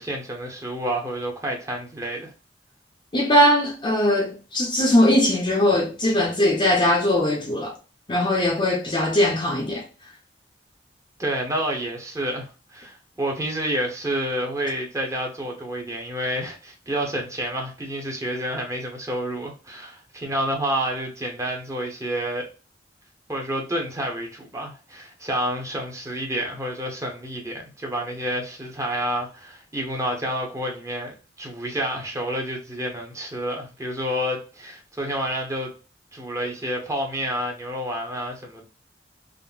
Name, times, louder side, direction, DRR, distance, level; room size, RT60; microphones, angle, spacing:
voice 1, 0.0-2.3 11.2-22.5 23.3-35.7 36.1-38.6, right 1 dB, 15° right, 0.8 m, -29 dB
voice 2, 3.1-7.7 8.1-9.8, left 1 dB, 30° left, 0.6 m, -20 dB
3.6 x 2.0 x 2.3 m
head